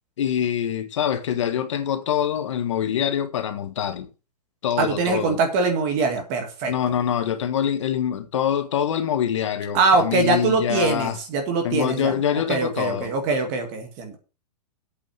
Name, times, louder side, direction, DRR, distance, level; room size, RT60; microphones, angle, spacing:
voice 1, 0.2-4.1 4.6-5.4 6.7-11.2 11.6-13.1, left 9 dB, 50° left, 1.3 m, -25 dB
voice 2, 4.8-6.7 9.7-14.2, right 4 dB, 25° right, 2.1 m, -23 dB
8.5 x 6.3 x 7.2 m
hypercardioid pair, 175°, 21 cm